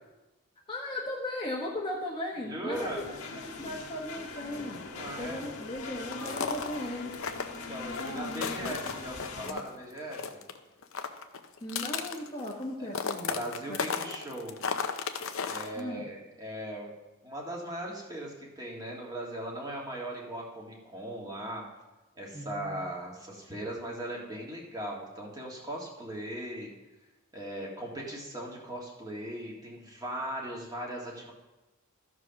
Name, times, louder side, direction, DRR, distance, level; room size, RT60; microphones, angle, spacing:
voice 1, 0.7-4.9 5.2-7.1 8.0-9.6 11.6-14.2 15.7-16.1 22.3-22.8, left 1 dB, 20° left, -2 dB, 1.1 m, -38 dB
voice 2, 2.5-3.1 5.0-5.4 7.7-10.4 12.8-12.9 13.3-14.6 15.5-16.9 17.2-21.6 22.2-26.7 27.3-31.3, right 1 dB, 15° right, -2 dB, 1.7 m, -39 dB
sound 1, 2.7-9.5, left 4 dB, 80° left, 1.5 m, -41 dB
sound 2, 6.1-6.8 7.1-9.7 9.9-10.6 10.8-12.6 12.9-15.8, left 6 dB, 60° left, 0.7 m, -34 dB
13.5 x 4.8 x 5.8 m, 1.1 s
head